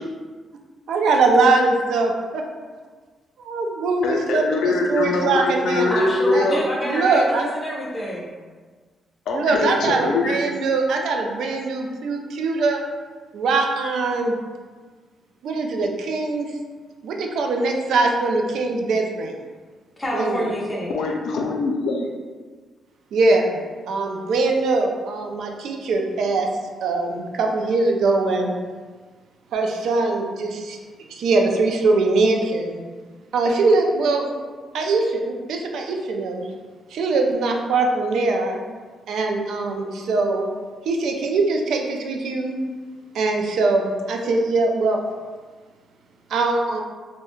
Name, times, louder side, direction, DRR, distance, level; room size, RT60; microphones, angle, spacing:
voice 1, 0.9-2.4 3.5-5.9 6.3-6.5 6.8-7.4 9.3-12.8 13.3-14.4 15.4-16.5 17.0-19.3 20.1-20.5 23.1-23.6 23.9-26.5 26.8-28.5 29.5-30.8 31.1-32.8 33.3-34.3 34.7-36.5 36.9-38.6 39.1-40.5 40.9-42.6 43.1-45.0 46.3-46.8, right 3 dB, 75° right, 2 dB, 0.3 m, -22 dB
voice 2, 4.0-6.6 9.3-10.4 20.9-22.1, left 3 dB, 85° left, 0 dB, 0.4 m, -23 dB
voice 3, 5.9-8.3 20.0-21.0, equal, 15° left, -5 dB, 0.4 m, -27 dB
2.3 x 2.1 x 3.0 m, 1.4 s
cardioid pair, 170°, 0 cm